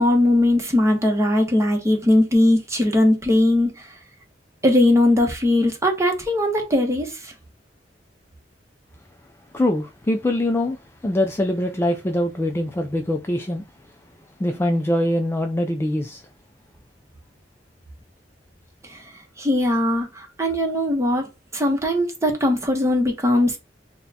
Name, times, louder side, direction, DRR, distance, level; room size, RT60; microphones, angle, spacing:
voice 1, 0.0-3.7 4.6-7.1 19.4-23.6, left 1 dB, 15° right, 0.9 m, -19 dB
voice 2, 9.5-13.6 14.4-16.2, left 1 dB, 15° left, 0.3 m, -23 dB
6.1 x 2.2 x 2.7 m
head